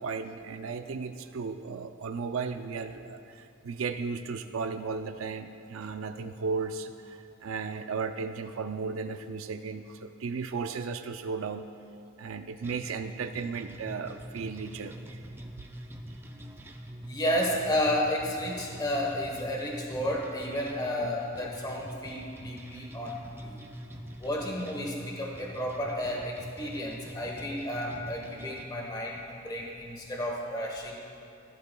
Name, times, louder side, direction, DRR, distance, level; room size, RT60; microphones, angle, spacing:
voice 1, 0.0-11.6 12.2-15.2, right 5 dB, 90° right, 8 dB, 0.4 m, -35 dB
sound 1, 12.6-28.6, right 1 dB, 10° right, 0.5 m, -44 dB
voice 2, 17.0-23.7 24.2-31.0, left 1 dB, 20° left, -1 dB, 1.1 m, -32 dB
16.0 x 11.5 x 2.3 m, 2.5 s
head